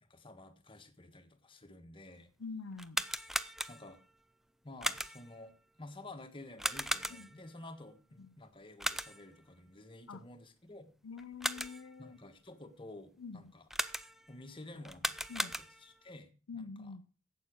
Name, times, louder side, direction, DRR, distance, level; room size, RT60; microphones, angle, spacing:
voice 1, 0.0-2.3 3.7-4.0 4.6-10.9 12.0-13.6 14.3-16.9, left 2 dB, 25° left, 5 dB, 1.5 m, -52 dB
voice 2, 2.4-3.0 7.1-7.3 8.2-8.3 10.1-10.2 11.0-12.2 13.2-13.5 15.3-15.5 16.5-17.0, left 4 dB, 85° left, 12 dB, 0.7 m, -45 dB
sound 1, 2.7-4.0 4.8-5.4 6.6-7.5 8.8-9.4 11.2-11.9 13.7-14.3 14.8-16.0, equal, ahead, 0.5 m, -37 dB
12.0 x 8.5 x 6.3 m, 0.37 s
head